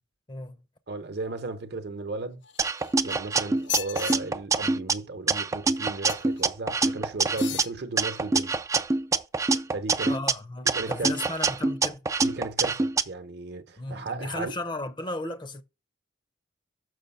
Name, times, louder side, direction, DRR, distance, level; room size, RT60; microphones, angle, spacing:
voice 1, 0.3-0.6 7.5-7.6 10.1-12.1 13.8-15.6, left 2 dB, 25° left, 0.7 m, -35 dB
voice 2, 0.9-2.4 3.0-8.6 9.7-10.1 10.7-11.2 12.2-14.5, right 3 dB, 60° right, 0.9 m, -35 dB
sound 1, 2.4-3.1 3.6-4.2 6.1-6.4 7.3-7.7 8.4-8.5, left 12 dB, 65° left, 0.5 m, -36 dB
sound 2, 2.6-4.9 5.3-7.6 8.0-10.3 10.7-13.0, right 4 dB, 15° right, 0.3 m, -25 dB
6.6 x 6.1 x 5.5 m
head